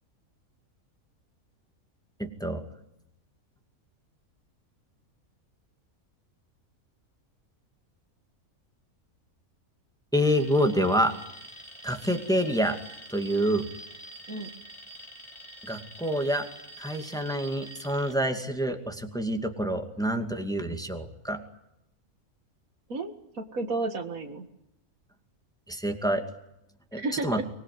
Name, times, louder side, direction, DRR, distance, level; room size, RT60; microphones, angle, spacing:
voice 1, 2.2-2.6 10.1-11.1 11.8-12.8 13.1-13.7 15.7-16.5 16.8-21.4 25.7-26.2 26.9-27.4, equal, 5° left, 5 dB, 2.3 m, -27 dB
Alarm, 10.1-18.2, right 1 dB, 20° left, 3.2 m, -46 dB
voice 2, 22.9-24.5 27.0-27.4, right 3 dB, 70° right, 7 dB, 2.3 m, -32 dB
24.5 x 21.0 x 9.5 m, 0.84 s
omnidirectional pair, 1.5 m